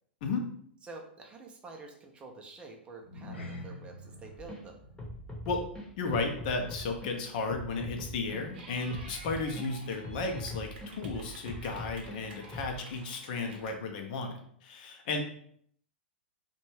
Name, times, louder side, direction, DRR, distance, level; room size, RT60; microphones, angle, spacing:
voice 1, 0.8-4.8, right 3 dB, 20° right, 1 dB, 0.4 m, -48 dB
sound 1, 3.0-7.6 7.9-8.2 8.6-8.7, left 1 dB, 85° left, 0.7 m, -48 dB
sound 2, 4.4-4.6 5.0-7.1 7.5-9.7 10.0-12.2 12.5-12.8, left 1 dB, 10° left, 0.7 m, -42 dB
voice 2, 6.0-15.2, left 3 dB, 50° left, 3 dB, 0.5 m, -34 dB
Clapping / Cheering, 8.5-13.7, right 2 dB, 55° right, 0.7 m, -51 dB
2.6 x 2.2 x 3.0 m, 0.63 s
figure-of-eight pair, 100°, 6 cm